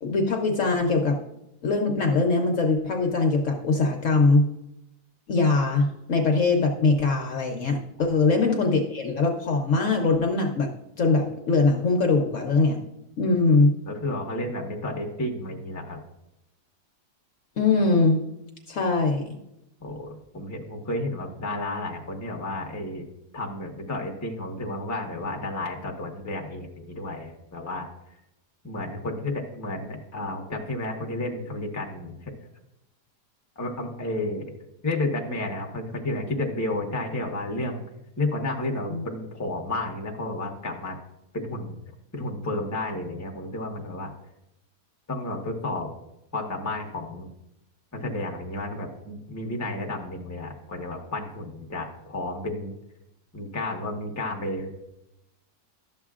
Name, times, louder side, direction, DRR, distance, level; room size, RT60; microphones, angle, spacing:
voice 1, 0.0-1.1 1.6-4.4 5.3-10.7 11.0-12.8 13.2-13.7 17.6-18.2 18.7-19.3 38.9-39.0, left 3 dB, 60° left, 2 dB, 1.0 m, -22 dB
voice 2, 13.8-16.0 19.8-23.0 23.3-28.2 28.6-32.3 33.6-34.5 34.8-37.8 38.2-41.0 41.3-41.7 42.1-44.1 45.1-45.9 46.3-47.3 47.9-52.7 53.3-54.7, left 2 dB, 15° left, 1 dB, 0.9 m, -31 dB
12.0 x 7.1 x 2.4 m, 0.87 s
omnidirectional pair, 1.7 m